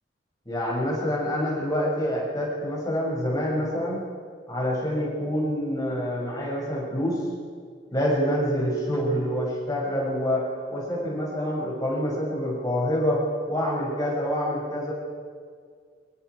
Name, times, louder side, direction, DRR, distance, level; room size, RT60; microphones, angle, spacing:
voice 1, 0.5-4.0 4.5-7.2 7.9-13.2 13.5-14.9, equal, 20° left, -4 dB, 6.3 m, -26 dB
28.5 x 25.5 x 4.8 m, 2.1 s
head